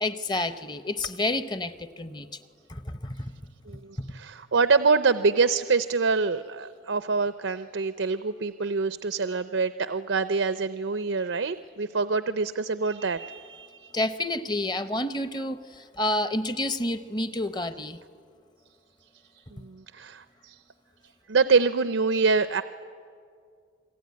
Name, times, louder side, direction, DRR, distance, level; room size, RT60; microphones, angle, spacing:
voice 1, 0.0-2.4 2.7-3.5 4.0-4.2 13.9-18.0, left 1 dB, 20° left, 12 dB, 0.8 m, -29 dB
voice 2, 3.7-13.9 19.5-20.6 21.3-22.6, right 4 dB, 90° right, 12 dB, 0.6 m, -25 dB
28.0 x 21.0 x 9.5 m, 2.2 s
head